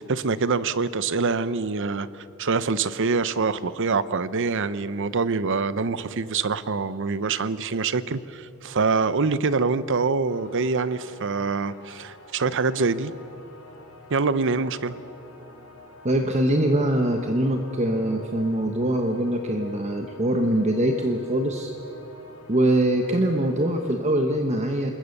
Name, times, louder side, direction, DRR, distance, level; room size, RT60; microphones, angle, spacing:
voice 1, 0.0-2.1 2.4-13.1 14.1-15.0, right 4 dB, 60° right, 15 dB, 0.8 m, -25 dB
sound 1, 10.3-23.9, left 2 dB, 90° left, 4.4 m, -48 dB
voice 2, 16.0-21.7 22.5-24.9, right 1 dB, 30° right, 4 dB, 1.2 m, -23 dB
27.0 x 21.0 x 6.7 m, 2.8 s
head